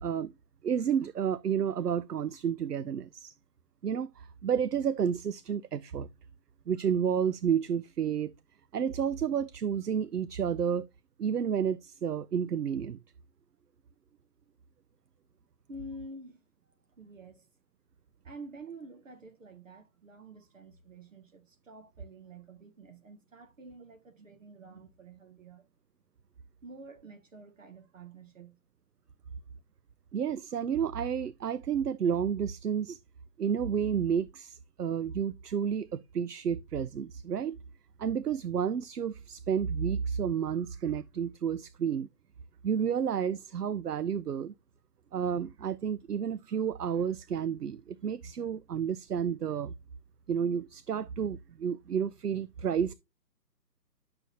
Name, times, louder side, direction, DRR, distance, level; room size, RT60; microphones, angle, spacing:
voice 1, 0.0-0.3 0.6-3.3 3.8-6.1 6.7-8.3 8.7-10.9 11.2-13.0 30.1-33.0 33.4-37.6 38.0-42.1 42.6-44.5 45.1-49.7 50.3-52.9, right 8 dB, 65° right, 0.6 m, -31 dB
voice 2, 15.7-16.4 16.9-17.5 18.2-25.7 26.6-28.6, right 2 dB, 50° right, 1.9 m, -48 dB
10.5 x 6.8 x 2.7 m
figure-of-eight pair, 150°, 50 cm